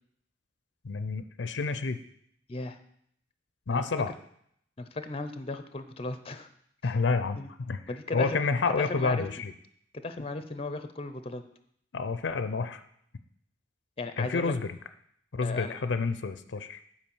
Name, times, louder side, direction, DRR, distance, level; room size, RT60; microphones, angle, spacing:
voice 1, 0.8-2.0 3.7-4.1 6.8-7.4 7.7-7.8 8.1-9.5 11.9-12.8 14.2-14.7 15.3-16.8, left 4 dB, 90° left, 11 dB, 0.6 m, -29 dB
voice 2, 4.8-6.5 6.8-6.9 7.4-7.5 7.9-8.4 8.8-9.2 9.9-11.4 14.0-14.5 15.4-15.7, left 3 dB, 35° left, 10 dB, 0.6 m, -36 dB
8.4 x 4.8 x 7.1 m, 0.69 s
head